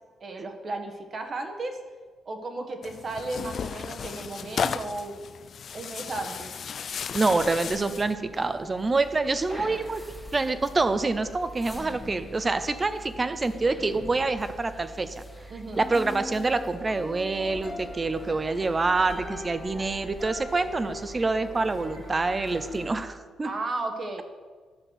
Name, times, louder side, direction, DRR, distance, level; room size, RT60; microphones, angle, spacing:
voice 1, 0.2-1.8 2.2-5.2 5.7-6.6 9.5-9.8 15.5-15.8 19.7-19.9 23.4-24.2, right 2 dB, 40° right, 4 dB, 1.4 m, -34 dB
Tearing, 2.8-8.2, left 7 dB, 55° left, 0.4 m, -34 dB
sound 1, 6.3-23.1, equal, 10° left, 1.5 m, -42 dB
voice 2, 7.1-10.0 10.3-15.2 15.8-23.5, right 3 dB, 25° right, 12 dB, 0.7 m, -26 dB
sound 2, 17.2-22.9, right 1 dB, 80° right, 1.7 m, -48 dB
10.5 x 6.0 x 6.4 m, 1.5 s
cardioid pair, 90°, 0 cm